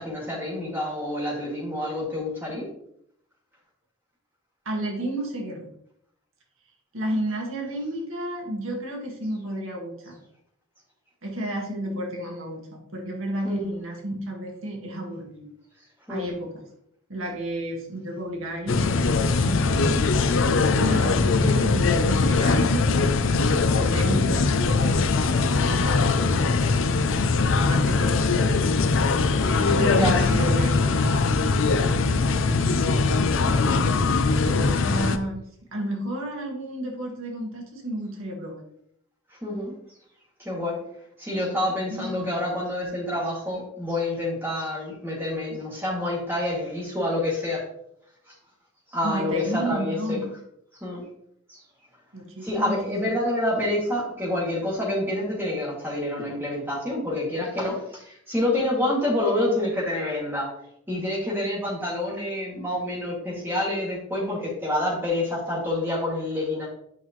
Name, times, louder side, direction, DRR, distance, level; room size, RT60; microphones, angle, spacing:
voice 1, 0.0-2.7 13.4-13.6 16.1-16.3 25.8-26.0 29.9-30.9 33.7-33.8 39.4-39.7 40.4-40.8 41.2-47.6 48.9-50.2 50.8-51.0 51.5-51.6 52.4-60.5 60.9-66.7, left 1 dB, 10° right, -4 dB, 2.3 m, -27 dB
voice 2, 4.7-5.7 6.9-10.2 11.2-15.5 16.1-16.5 17.1-20.1 20.7-23.0 23.7-25.0 25.6-26.5 27.5-29.0 29.5-31.3 34.5-35.4 35.7-38.6 41.9-42.2 49.0-50.3 52.1-53.0, right 1 dB, 75° right, 0 dB, 1.7 m, -32 dB
sound 1, 18.7-35.2, left 4 dB, 70° left, 0.6 m, -21 dB
9.3 x 5.5 x 3.1 m, 0.72 s
head